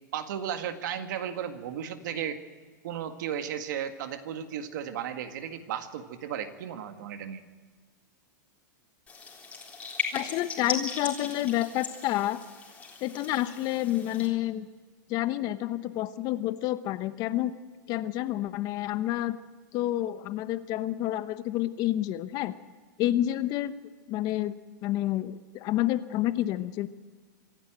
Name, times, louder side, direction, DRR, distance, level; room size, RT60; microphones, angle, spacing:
voice 1, 0.1-2.4 2.8-7.4, right 9 dB, 65° right, 8 dB, 1.9 m, -35 dB
sound 1, 9.1-14.3, left 5 dB, 15° left, 3.8 m, -37 dB
voice 2, 10.1-12.4 13.0-14.7 15.1-17.5 17.9-19.4 19.7-22.5 23.0-23.7 24.1-24.5 24.8-26.9, left 14 dB, 35° left, 13 dB, 0.9 m, -29 dB
25.5 x 11.0 x 9.1 m, 1.4 s
hypercardioid pair, 140°, 11 cm